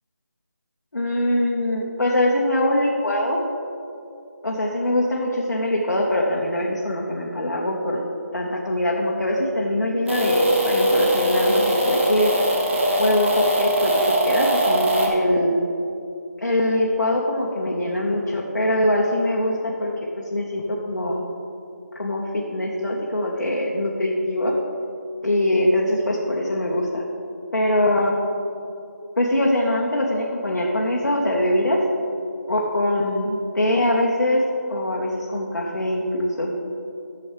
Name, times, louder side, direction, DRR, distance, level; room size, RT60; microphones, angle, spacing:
voice 1, 0.9-3.4 4.4-8.0 8.3-12.3 13.0-13.9 14.2-15.6 16.4-19.9 20.3-21.2 22.0-24.5 25.2-27.0 27.5-28.2 29.2-31.8 32.5-34.4 34.7-36.5, left 1 dB, 85° left, -3 dB, 1.2 m, -22 dB
sound 1, 10.1-15.1, right 1 dB, 40° right, 1.5 m, -21 dB
12.5 x 7.1 x 3.2 m, 2.7 s
figure-of-eight pair, 175°, 10 cm